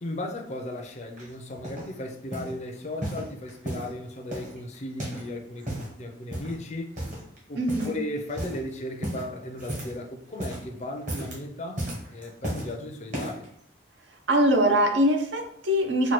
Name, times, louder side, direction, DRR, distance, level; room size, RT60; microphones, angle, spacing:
voice 1, 0.0-7.0 7.5-13.5, left 1 dB, 35° left, 3 dB, 0.5 m, -36 dB
sound 1, 1.2-1.9 2.3-2.6 3.0-3.9 4.3-5.3 5.5-5.9 6.3-6.6 7.0-7.4 7.7-8.0 8.3-8.6 9.0-10.0 10.3-10.7 11.0-11.4 11.8-12.7 13.1-13.5 14.1-14.2, right 1 dB, 40° right, 1.0 m, -34 dB
voice 2, 7.6-8.0 14.3-16.1, equal, 60° right, 4 dB, 0.6 m, -22 dB
4.3 x 2.2 x 3.0 m, 0.73 s
head